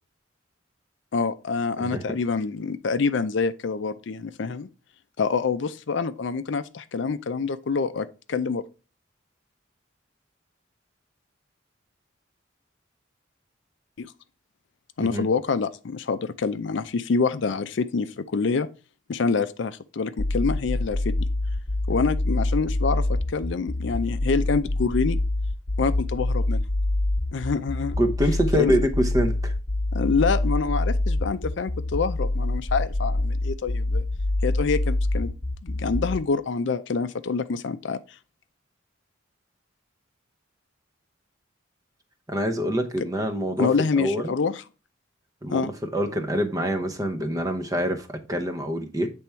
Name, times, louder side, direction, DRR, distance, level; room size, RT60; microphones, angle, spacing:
voice 1, 1.1-4.7 5.2-8.6 14.0-14.1 15.0-18.7 19.1-21.1 21.9-25.2 25.8-26.6 27.3-28.0 28.5-28.8 29.9-34.0 34.4-35.3 35.6-38.0 43.6-44.6 45.5-45.7, left 4 dB, 60° left, 0.5 m, -26 dB
sound 1, 20.2-36.2, left 2 dB, 40° left, 0.8 m, -25 dB
voice 2, 28.0-29.5 42.3-43.7 44.0-44.3 45.4-49.1, equal, 20° right, 0.7 m, -25 dB
8.4 x 3.5 x 4.4 m
head